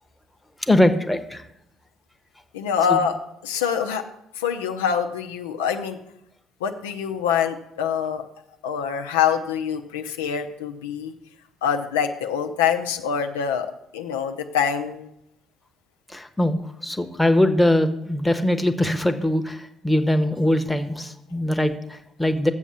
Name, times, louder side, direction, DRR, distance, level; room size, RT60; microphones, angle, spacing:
voice 1, 0.6-1.5 2.9-3.0 16.1-22.5, left 1 dB, 5° left, 7 dB, 1.0 m, -22 dB
voice 2, 2.5-3.2 3.4-4.0 4.4-6.0 6.6-8.2 8.6-11.1 11.6-13.7 13.9-15.1, left 7 dB, 85° left, 5 dB, 0.6 m, -25 dB
7.2 x 6.3 x 7.1 m, 0.78 s
hypercardioid pair, 55°, 0 cm